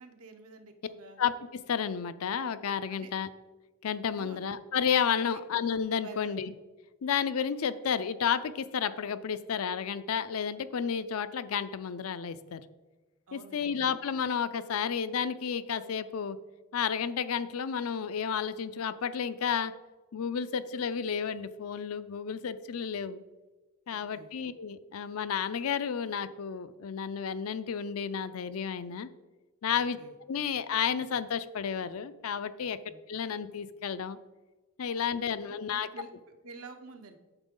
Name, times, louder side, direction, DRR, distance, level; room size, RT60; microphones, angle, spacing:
voice 1, 0.0-1.2 2.9-3.2 4.2-4.4 5.2-5.4 6.0-6.4 13.3-13.9 23.9-24.3 29.8-30.1 32.8-33.0 35.1-35.2 35.4-37.2, right 3 dB, 80° right, 6 dB, 1.0 m, -49 dB
voice 2, 1.2-3.3 3.8-6.5 7.0-12.6 13.3-16.4 16.7-19.7 20.1-23.2 23.9-29.1 29.6-30.0 30.3-32.8 33.1-34.2 34.8-35.9, left 7 dB, 75° left, 13 dB, 0.5 m, -31 dB
8.9 x 7.1 x 3.8 m, 1.2 s
head